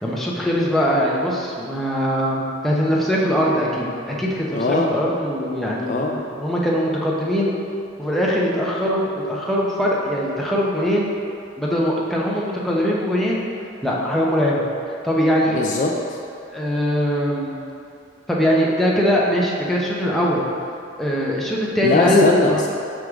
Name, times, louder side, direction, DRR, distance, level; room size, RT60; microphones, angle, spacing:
voice 1, 0.0-7.5 8.0-11.1 11.6-13.4 13.8-14.6 15.0-15.6 16.5-17.5 18.3-20.4 21.0-22.6, equal, ahead, -5 dB, 0.7 m, -21 dB
voice 2, 4.5-4.9 5.9-6.2 15.5-16.2 21.8-22.7, left 3 dB, 40° left, 0 dB, 0.4 m, -20 dB
6.3 x 4.7 x 3.6 m, 2.5 s
head